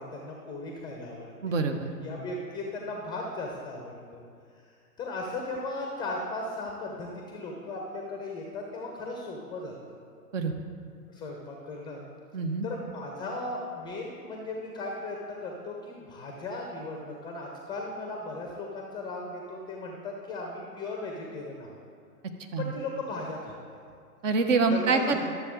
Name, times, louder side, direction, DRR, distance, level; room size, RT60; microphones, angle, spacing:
voice 1, 0.0-1.5 2.0-4.2 4.6-4.7 5.0-9.7 11.1-12.0 12.6-21.8 22.6-23.6 24.7-25.2, left 2 dB, 10° left, 0 dB, 0.5 m, -37 dB
voice 2, 1.4-1.9 10.3-10.5 12.3-12.7 22.5-22.7 24.2-25.2, right 4 dB, 55° right, 6 dB, 1.0 m, -26 dB
12.0 x 7.0 x 3.7 m, 2.3 s
figure-of-eight pair, 110°, 47 cm